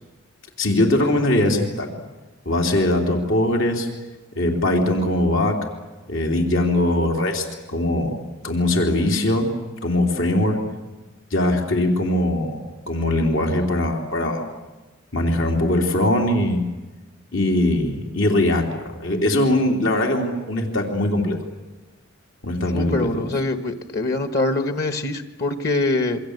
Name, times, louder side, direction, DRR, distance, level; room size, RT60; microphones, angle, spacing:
voice 1, 0.6-1.9 2.4-3.9 4.3-5.6 6.1-8.1 8.4-9.5 9.8-10.6 11.3-12.6 12.9-14.4 15.1-16.6 17.3-21.4 22.4-23.2, left 1 dB, 80° left, 2 dB, 3.4 m, -21 dB
voice 2, 22.7-26.2, left 2 dB, 55° left, 8 dB, 1.6 m, -24 dB
27.0 x 24.0 x 8.1 m, 1.2 s
head